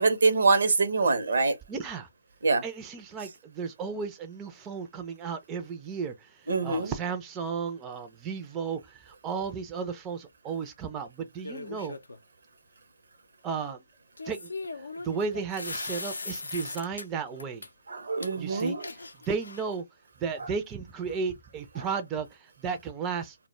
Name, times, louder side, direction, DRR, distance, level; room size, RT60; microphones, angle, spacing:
voice 1, 0.0-1.6 2.4-2.6 6.5-6.9 17.9-18.8, right 3 dB, 70° right, 0.6 m, -24 dB
voice 2, 1.7-2.1 2.6-12.0 13.4-13.8 14.3-14.5 15.0-17.6 18.4-18.8 19.3-19.8 20.2-23.4, right 5 dB, 20° right, 0.3 m, -34 dB
sound 1, 11.4-12.2 14.2-17.0 17.4-17.7 18.2-18.3 18.6-19.8, left 3 dB, 85° left, 0.4 m, -38 dB
2.1 x 2.0 x 2.9 m
figure-of-eight pair, 140°, 0 cm